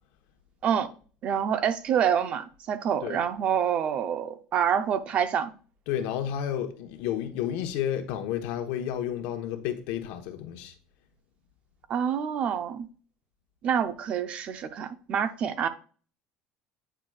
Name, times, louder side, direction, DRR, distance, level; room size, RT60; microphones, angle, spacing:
voice 1, 1.2-5.5 11.9-12.9 13.6-15.7, right 8 dB, 40° right, 0.5 m, -27 dB
voice 2, 5.9-10.7, left 10 dB, 75° left, 1.0 m, -31 dB
8.8 x 4.8 x 2.3 m
cardioid pair, 155°, 3 cm